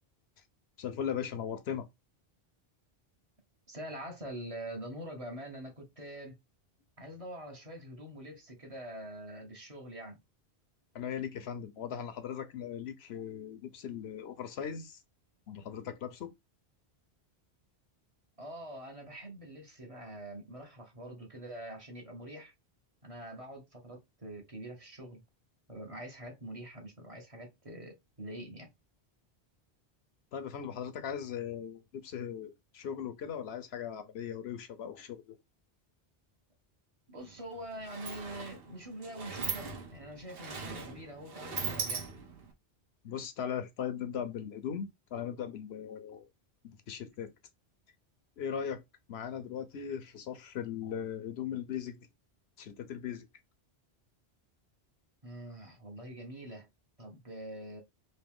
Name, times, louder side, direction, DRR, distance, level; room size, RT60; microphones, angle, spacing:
voice 1, 0.8-1.9 10.9-15.0 15.5-16.3 30.3-35.4 43.0-46.3 46.6-47.3 48.4-48.8 49.1-52.0 52.6-53.2, left 8 dB, 75° left, 0.9 m, -38 dB
voice 2, 3.7-6.4 7.0-10.2 18.4-22.5 23.0-25.2 25.7-28.7 37.1-42.0 55.2-56.7 57.0-57.8, right 1 dB, 35° right, 1.0 m, -45 dB
Sliding door, 37.2-37.3 37.6-42.5, right 5 dB, 60° right, 1.0 m, -40 dB
3.1 x 2.7 x 3.4 m
omnidirectional pair, 1.1 m